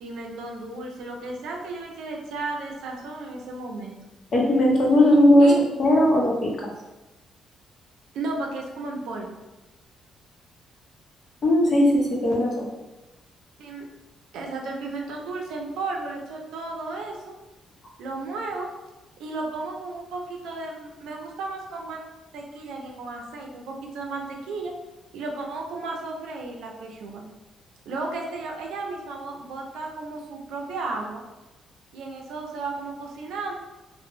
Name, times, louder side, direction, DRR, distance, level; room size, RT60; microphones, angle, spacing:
voice 1, 0.0-4.0 5.4-5.6 8.1-9.4 13.6-13.9 14.3-17.3 18.0-18.7 19.2-22.0 22.3-24.7 25.1-27.2 27.9-31.2 31.9-33.5, right 3 dB, 85° right, 1 dB, 0.4 m, -34 dB
voice 2, 4.3-6.7 11.4-12.7, left 1 dB, 45° left, -2 dB, 0.7 m, -18 dB
2.1 x 2.1 x 3.0 m, 1.1 s
cardioid pair, 90°, 0 cm